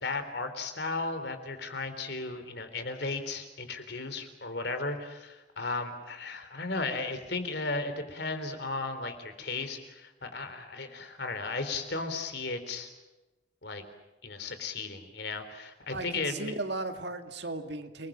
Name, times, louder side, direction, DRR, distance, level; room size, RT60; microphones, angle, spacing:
voice 1, 0.0-12.9 13.6-13.8 14.2-16.6, left 3 dB, 60° left, 8 dB, 3.6 m, -35 dB
voice 2, 15.9-18.1, right 2 dB, 65° right, 7 dB, 2.2 m, -36 dB
30.0 x 21.0 x 7.5 m, 1.1 s
head